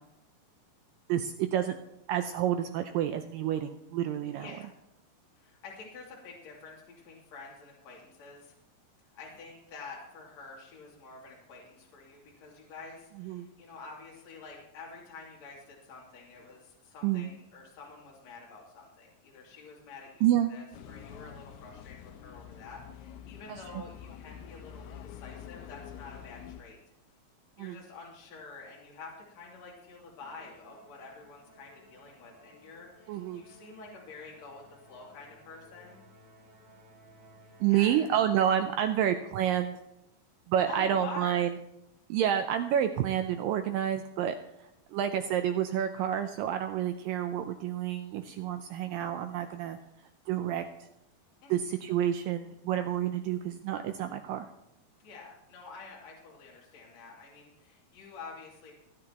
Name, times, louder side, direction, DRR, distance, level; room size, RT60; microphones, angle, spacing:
voice 1, 1.1-1.7 2.1-4.5 13.2-13.5 17.0-17.3 20.2-20.5 23.5-23.6 27.6-27.8 33.1-33.4 37.6-39.8 40.5-41.5 42.1-44.4 44.9-49.8 50.3-50.6 51.5-54.5, right 10 dB, 80° right, 8 dB, 2.0 m, -29 dB
voice 2, 4.4-4.7 5.4-8.5 9.1-26.8 27.6-36.0 37.4-38.1 40.7-41.4 51.4-51.7 55.0-58.7, left 4 dB, 45° left, -3 dB, 3.7 m, -48 dB
sound 1, 20.7-26.6, left 9 dB, 90° left, 2.8 m, -47 dB
Musical instrument, 30.2-38.7, equal, 65° right, 4.9 m, -58 dB
27.5 x 9.7 x 2.9 m, 0.87 s
omnidirectional pair, 4.5 m